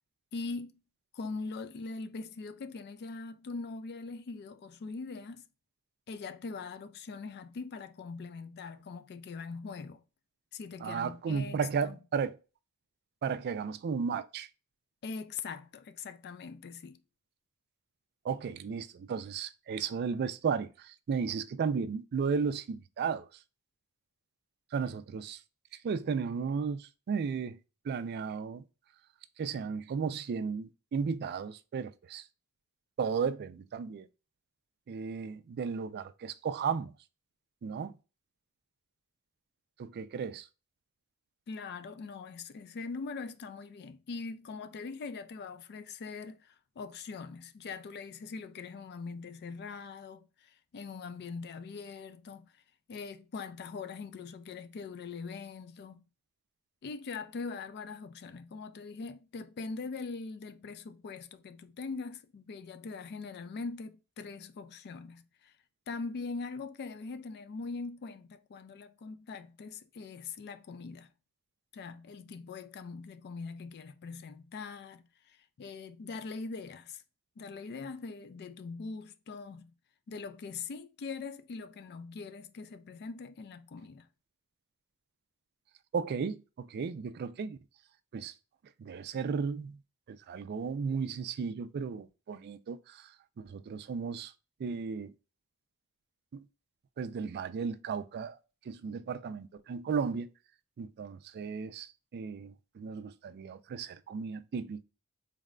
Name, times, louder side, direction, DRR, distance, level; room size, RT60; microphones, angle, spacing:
voice 1, 0.3-0.7 1.1-5.4 6.1-10.0 10.5-12.0 15.0-17.0 41.5-52.6 52.9-56.0 56.8-65.5 65.9-71.1 71.7-77.0 77.4-79.7 80.1-84.1, left 4 dB, 45° left, 0.3 m, -42 dB
voice 2, 10.8-12.4 13.2-14.5 18.2-23.3 24.7-25.4 25.8-27.6 27.9-28.6 29.4-32.2 33.0-34.1 34.9-36.9 37.6-37.9 39.8-40.5 85.9-87.6 88.1-88.3 88.8-89.8 90.3-93.1 93.4-94.3 94.6-95.1 96.3-96.4 97.0-98.4 98.7-100.3 100.8-104.8, right 6 dB, 45° right, 0.3 m, -34 dB
4.0 x 2.2 x 3.5 m
head